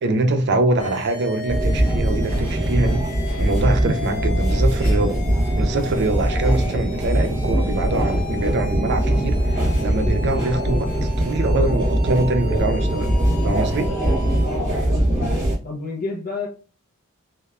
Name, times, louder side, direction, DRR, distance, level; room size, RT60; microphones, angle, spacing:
voice 1, 0.0-3.0 3.4-5.2 5.5-10.9 11.2-13.1 13.4-13.9, right 2 dB, 50° right, 0.4 m, -23 dB
sound 1, 0.8-14.5, left 2 dB, 85° left, 0.8 m, -37 dB
sound 2, 1.5-15.6, right 1 dB, 15° right, 1.3 m, -21 dB
voice 2, 14.4-16.5, left 3 dB, 45° left, 0.5 m, -31 dB
3.0 x 2.1 x 2.3 m
head